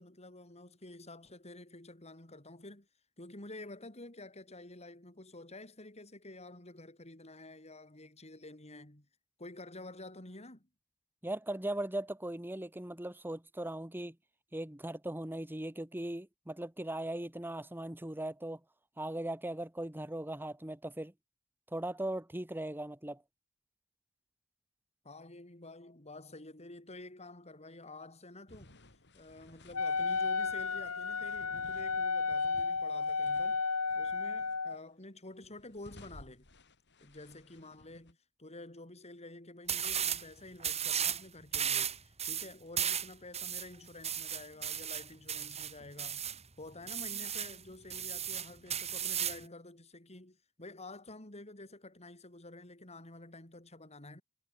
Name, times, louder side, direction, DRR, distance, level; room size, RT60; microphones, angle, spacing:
voice 1, 0.0-2.9 3.2-9.1 9.4-10.7 25.0-28.8 29.1-33.6 33.9-36.5 37.0-46.3 46.6-54.2, left 2 dB, 30° left, 4.4 m, -50 dB
voice 2, 11.2-14.2 14.5-18.6 19.0-21.1 21.7-23.2, right 1 dB, 10° right, 1.4 m, -39 dB
sound 1, 28.5-33.6 33.9-34.8 35.3-38.1, left 1 dB, 55° left, 7.4 m, -58 dB
Wind instrument woodwind instrument, 29.7-34.8, left 4 dB, 80° left, 3.2 m, -33 dB
sound 2, 39.7-40.2 40.6-41.2 41.5-46.4 46.9-47.6 47.9-49.4, right 9 dB, 30° right, 3.9 m, -35 dB
head